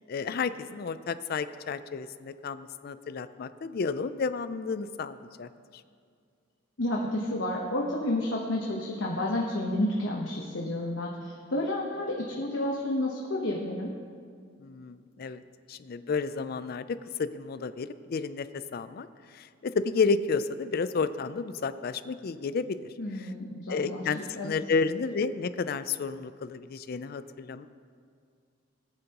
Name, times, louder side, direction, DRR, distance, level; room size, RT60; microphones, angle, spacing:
voice 1, 0.1-5.8 14.6-15.4 15.7-23.3 23.7-27.7, left 4 dB, 50° left, 13 dB, 0.4 m, -31 dB
voice 2, 6.8-13.9 23.0-24.5, left 1 dB, 75° left, -2 dB, 1.0 m, -31 dB
17.5 x 9.0 x 2.9 m, 2.2 s
head